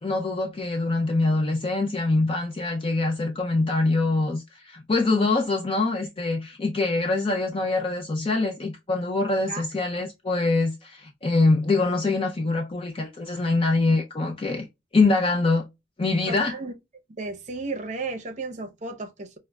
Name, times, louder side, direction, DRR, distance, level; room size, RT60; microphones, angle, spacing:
voice 1, 0.0-14.7 14.9-15.7 16.0-16.6, left 3 dB, 30° left, 0.4 m, -24 dB
voice 2, 16.3-16.7 17.1-19.4, right 3 dB, 40° right, 0.6 m, -34 dB
5.1 x 2.1 x 2.2 m
head